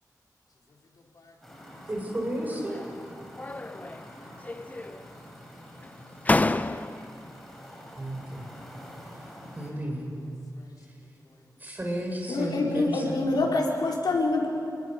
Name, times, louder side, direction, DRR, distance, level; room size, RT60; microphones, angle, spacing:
voice 1, 0.7-1.9 4.0-5.3 5.8-6.2 7.7-7.9 10.5-11.6, left 2 dB, 65° left, 3.7 m, -62 dB
sound 1, 1.4-9.7, equal, 5° left, 5.6 m, -47 dB
voice 2, 1.9-2.8 8.0-8.4 9.5-10.1 11.6-13.5, right 1 dB, 25° right, 6.0 m, -33 dB
sound 2, 2.4-3.0 3.4-4.1 4.4-5.2 5.8-5.9 6.2-7.2, left 2 dB, 20° left, 0.6 m, -29 dB
voice 3, 12.3-14.5, left 2 dB, 85° left, 4.1 m, -26 dB
28.5 x 20.5 x 6.6 m
wide cardioid pair, 85°, 7 cm